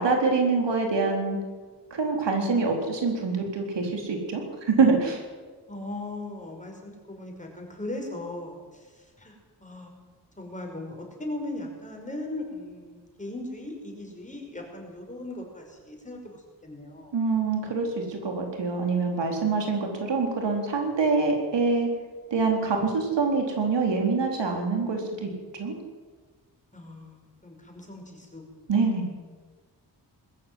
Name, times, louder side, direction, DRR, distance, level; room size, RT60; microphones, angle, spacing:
voice 1, 0.0-1.4 1.9-4.4 4.7-5.2 17.1-21.9 22.3-25.3 25.6-25.7 28.7-29.1, right 4 dB, 85° right, 2 dB, 4.2 m, -25 dB
voice 2, 5.7-9.3 9.6-9.9 10.4-17.1 26.7-28.5, left 2 dB, 15° left, 1 dB, 5.6 m, -38 dB
21.0 x 14.0 x 9.5 m, 1.4 s
wide cardioid pair, 115°, 42 cm